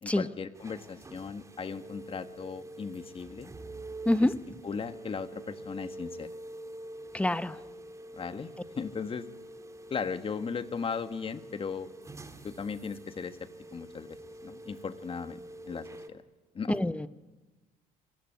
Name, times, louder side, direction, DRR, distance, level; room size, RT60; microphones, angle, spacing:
voice 1, 0.0-3.5 4.2-4.3 4.6-6.3 8.2-8.5 8.8-9.3 9.9-11.9 12.4-15.4 15.6-16.2 16.5-16.8, left 5 dB, 35° left, 11 dB, 1.7 m, -37 dB
sound 1, 0.5-16.1, right 1 dB, 20° right, 2.3 m, -46 dB
voice 2, 4.1-4.4 7.1-7.6 16.7-17.1, left 1 dB, 5° left, 14 dB, 1.0 m, -26 dB
28.0 x 22.5 x 9.3 m, 1.2 s
cardioid pair, 110°, 17 cm